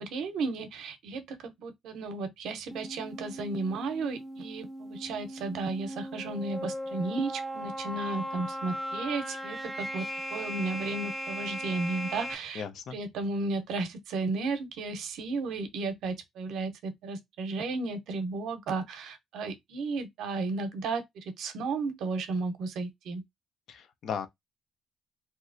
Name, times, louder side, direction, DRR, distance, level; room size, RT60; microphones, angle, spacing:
voice 1, 0.0-12.6 12.9-23.2, right 3 dB, 80° right, 0.7 m, -34 dB
sound 1, 2.7-12.3, equal, 15° right, 0.5 m, -38 dB
voice 2, 12.5-13.0 23.7-24.3, left 7 dB, 70° left, 0.5 m, -36 dB
3.2 x 2.7 x 2.5 m
cardioid pair, 90°, 0 cm